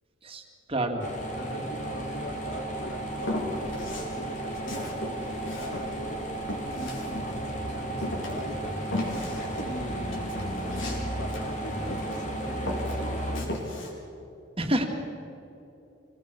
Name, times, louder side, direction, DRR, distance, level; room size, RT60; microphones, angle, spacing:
voice 1, 0.7-1.0 14.6-14.9, right 1 dB, 30° right, 4 dB, 2.3 m, -27 dB
sound 1, 1.0-13.4, right 1 dB, 40° left, 3.0 m, -34 dB
voice 2, 1.4-6.2 6.7-14.0, left 1 dB, 60° left, 3 dB, 3.3 m, -40 dB
Walk footsteps, 3.2-4.1 4.5-7.6 8.0-12.3 12.6-13.9, left 1 dB, 80° left, 4.6 m, -36 dB
25.5 x 19.5 x 6.8 m, 2.7 s
head